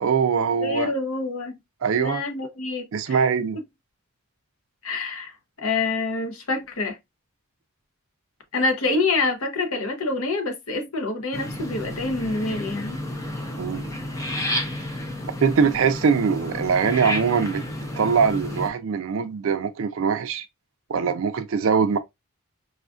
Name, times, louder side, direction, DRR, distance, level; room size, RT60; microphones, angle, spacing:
voice 1, 0.0-0.9 1.8-2.2 2.9-3.6 13.6-13.8 15.4-17.6 18.0-20.5 20.9-22.0, right 6 dB, 60° right, 0.3 m, -22 dB
voice 2, 0.6-1.6 2.0-3.2 4.8-5.3 5.6-7.0 8.5-13.0, left 3 dB, 70° left, 0.8 m, -26 dB
sound 1, 11.3-18.7, left 1 dB, 15° left, 0.5 m, -31 dB
4.8 x 2.4 x 2.4 m
head